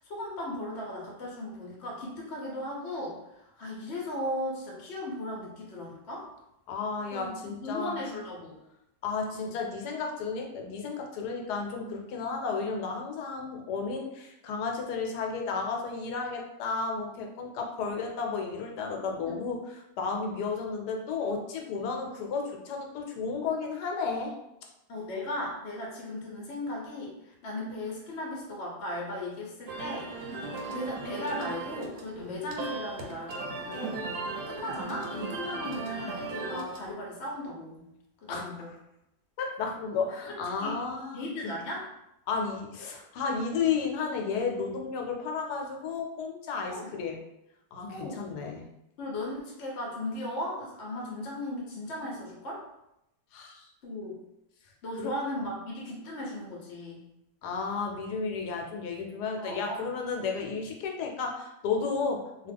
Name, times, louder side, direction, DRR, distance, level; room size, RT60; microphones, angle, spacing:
voice 1, 0.0-6.3 7.1-8.6 9.3-9.5 19.3-19.4 24.9-30.1 30.7-34.0 34.3-37.9 38.2-38.7 40.6-40.8 41.1-41.9 46.7-46.9 47.9-48.2 49.0-52.6 53.8-54.2 54.8-57.1 59.4-59.8, left 1 dB, 55° left, -3 dB, 0.8 m, -37 dB
voice 2, 6.7-8.0 9.0-24.3 32.1-32.4 38.3-38.4 39.4-41.5 42.3-47.2 47.7-48.7 53.3-53.7 55.0-55.1 57.4-62.5, left 5 dB, 80° left, 2 dB, 1.1 m, -33 dB
sound 1, 29.7-36.9, right 3 dB, 80° right, 1.1 m, -37 dB
2.8 x 2.3 x 3.4 m, 0.86 s
omnidirectional pair, 1.7 m